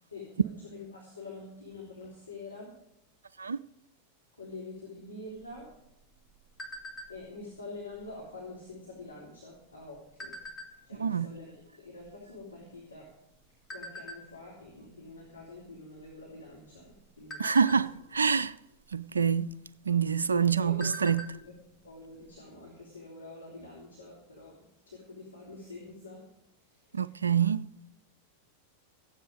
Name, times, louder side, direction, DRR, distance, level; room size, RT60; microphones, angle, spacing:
voice 1, 0.1-2.7 4.4-5.7 7.1-10.4 10.7-13.1 13.7-17.6 18.2-18.3 20.5-20.8 21.3-24.6 24.8-26.2 26.7-27.0, left 3 dB, 80° left, 3.4 m, -46 dB
sound 1, 5.4-7.4 7.9-8.2 8.4-8.8 9.5-11.0 11.6-11.7 11.9-13.2 13.7-14.2 14.7-15.0 15.3-15.5 15.9-16.5 16.9-18.3 19.4-19.5 19.9-20.0 20.4-21.5 21.7-21.8 22.2-22.3, left 1 dB, 20° left, 2.4 m, -44 dB
voice 2, 17.4-18.6 18.9-19.5 19.9-21.2 26.9-27.7, right 6 dB, 75° right, 0.3 m, -26 dB
15.0 x 10.0 x 5.0 m
figure-of-eight pair, 90°, 0 cm